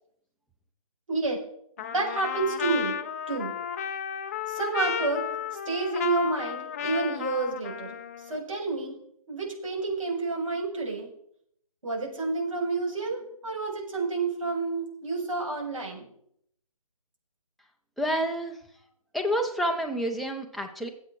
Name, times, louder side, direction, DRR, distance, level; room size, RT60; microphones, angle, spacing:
voice 1, 1.1-1.4 1.8-3.0 3.3-3.5 4.5-5.2 5.7-8.0 8.3-8.9 9.3-11.1 11.8-16.1, right 3 dB, 60° right, -1 dB, 7.6 m, -29 dB
Trumpet, 1.8-8.4, left 8 dB, 25° left, 0.7 m, -33 dB
voice 2, 18.0-18.5 19.1-20.9, equal, ahead, 1 dB, 0.9 m, -28 dB
21.5 x 8.5 x 4.7 m, 0.71 s
figure-of-eight pair, 150°, 19 cm